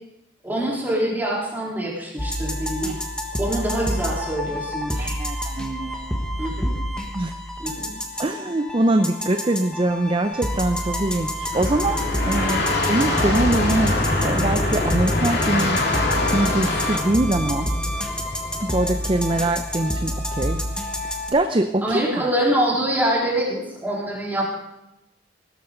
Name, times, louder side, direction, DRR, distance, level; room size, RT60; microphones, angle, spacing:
voice 1, 0.4-3.0 3.4-5.2 6.4-6.7 7.6-7.9 21.8-24.5, right 1 dB, 10° right, -4 dB, 3.8 m, -25 dB
sound 1, 2.2-21.3, equal, 5° left, 1.4 m, -28 dB
voice 2, 5.0-6.2 7.1-7.3 8.2-12.0 12.3-17.7 18.2-20.6 21.0-22.3, right 1 dB, 30° right, 8 dB, 0.6 m, -24 dB
sound 2, 10.8-20.8, left 1 dB, 25° left, 0.7 m, -30 dB
sound 3, 11.5-17.0, left 2 dB, 60° left, 2.5 m, -25 dB
17.5 x 12.5 x 3.9 m, 0.90 s
head